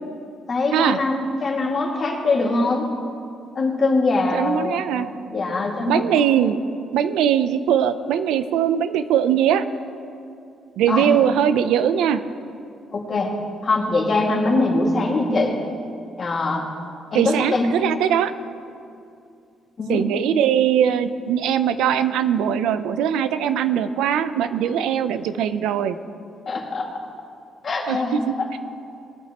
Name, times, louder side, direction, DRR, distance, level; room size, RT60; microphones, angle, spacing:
voice 1, 0.5-2.9 3.6-6.1 6.4-6.5 10.9-11.1 12.9-13.3 13.6-15.6 16.2-16.7 17.1-17.7 19.8-20.1 26.5-27.1 27.6-28.6, left 2 dB, 45° left, -1 dB, 2.0 m, -23 dB
voice 2, 4.3-5.1 5.9-6.6 6.9-9.6 10.8-12.2 17.1-18.3 19.9-26.0 27.9-28.6, right 9 dB, 90° right, 12 dB, 0.5 m, -21 dB
19.0 x 9.4 x 2.9 m, 2.5 s
cardioid pair, 90°, 0 cm